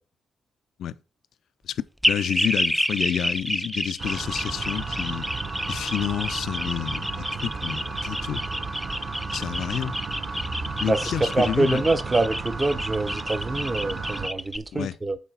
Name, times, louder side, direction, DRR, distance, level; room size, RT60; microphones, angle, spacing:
voice 1, 1.6-5.3 5.7-8.4 9.3-9.9 10.8-11.8 14.7-15.0, left 10 dB, 75° left, 0.5 m, -29 dB
sound 1, 2.0-14.6, equal, ahead, 0.3 m, -29 dB
sound 2, 4.0-14.3, right 4 dB, 40° right, 1.1 m, -34 dB
voice 2, 10.8-15.2, right 2 dB, 20° right, 0.7 m, -25 dB
8.2 x 4.0 x 5.5 m
cardioid pair, 145°, 0 cm